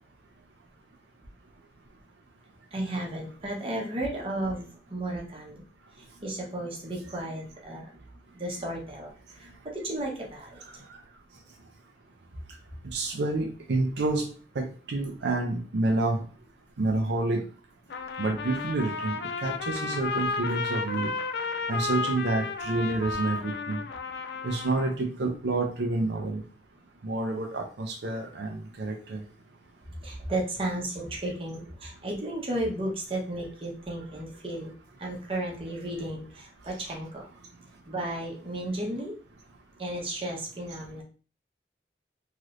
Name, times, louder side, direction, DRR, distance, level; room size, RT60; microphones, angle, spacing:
voice 1, 2.7-5.6 6.2-7.9 8.3-9.1 9.4-10.6 30.0-34.7 35.0-37.3 37.9-39.1 39.8-41.0, right 1 dB, 30° right, -2 dB, 0.8 m, -33 dB
voice 2, 12.9-14.3 14.6-16.2 16.8-17.4 18.2-21.1 21.7-23.8 24.4-26.4 27.0-29.2, right 2 dB, 75° right, 3 dB, 0.5 m, -28 dB
Trumpet, 17.9-25.0, left 4 dB, 65° left, 0.3 m, -33 dB
3.2 x 2.9 x 2.4 m, 0.38 s
head